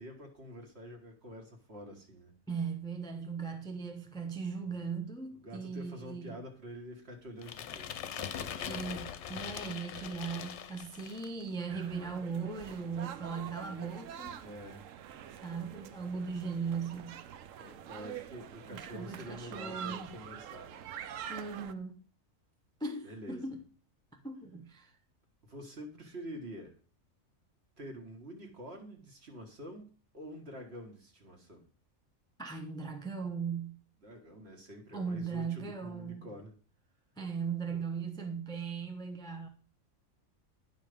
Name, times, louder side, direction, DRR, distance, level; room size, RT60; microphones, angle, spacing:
voice 1, 0.0-2.3 5.4-8.7 14.4-14.9 17.6-20.9 23.0-23.6 25.4-26.8 27.8-31.7 34.0-36.6, equal, 50° right, 1.9 m, -47 dB
voice 2, 2.5-6.4 8.7-14.4 15.4-17.2 18.7-20.1 21.3-22.0 22.8-23.6 24.2-24.9 32.4-33.8 34.9-36.3 37.2-39.5, right 5 dB, 5° left, 0.6 m, -38 dB
sound 1, 7.4-11.4, left 9 dB, 65° left, 0.9 m, -41 dB
sound 2, 11.7-21.7, right 9 dB, 70° right, 1.0 m, -46 dB
10.0 x 5.3 x 5.0 m
omnidirectional pair, 1.4 m